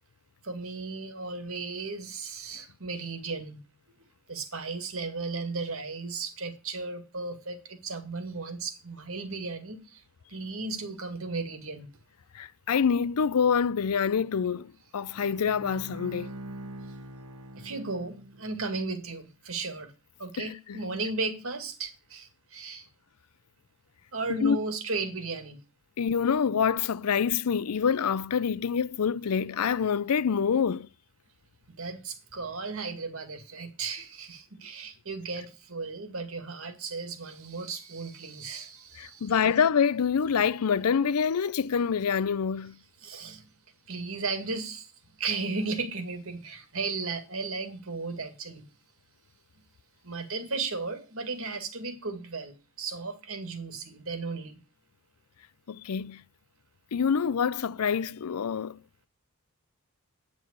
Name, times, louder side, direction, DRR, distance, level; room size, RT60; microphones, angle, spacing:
voice 1, 0.4-3.6 4.3-10.0 10.3-11.9 17.6-19.9 20.2-22.9 24.1-25.6 31.8-39.3 43.0-43.4 43.9-44.9 45.2-48.6 50.0-54.6, right 3 dB, 65° right, 2.1 m, -35 dB
voice 2, 12.3-16.3 20.4-20.8 24.4-24.6 26.0-30.9 39.0-42.8 55.7-56.2 56.9-58.8, left 6 dB, 85° left, 0.5 m, -26 dB
Bowed string instrument, 15.1-18.7, right 1 dB, 85° right, 1.3 m, -43 dB
9.4 x 6.3 x 8.1 m
head